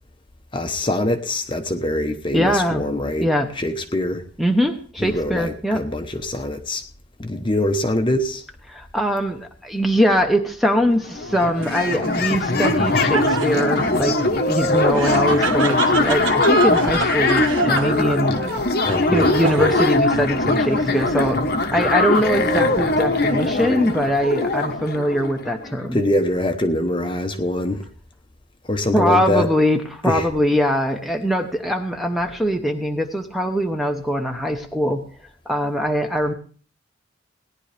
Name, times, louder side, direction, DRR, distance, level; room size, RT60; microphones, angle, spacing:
voice 1, 0.5-3.3 3.6-4.2 5.0-6.8 7.2-8.4 18.8-19.7 25.9-27.9 28.7-29.5 30.1-30.3, left 1 dB, 25° left, 6 dB, 0.9 m, -23 dB
voice 2, 2.3-2.9 3.2-3.5 4.4-5.8 8.7-18.3 19.1-21.4 21.7-26.0 28.9-35.0 35.5-36.3, equal, ahead, 4 dB, 0.9 m, -22 dB
sound 1, 10.9-11.0 11.1-25.8, left 2 dB, 50° left, 1.2 m, -21 dB
Laughter, 11.6-20.0 20.4-21.1, right 4 dB, 75° right, 1.4 m, -29 dB
18.0 x 10.5 x 3.4 m, 0.42 s
head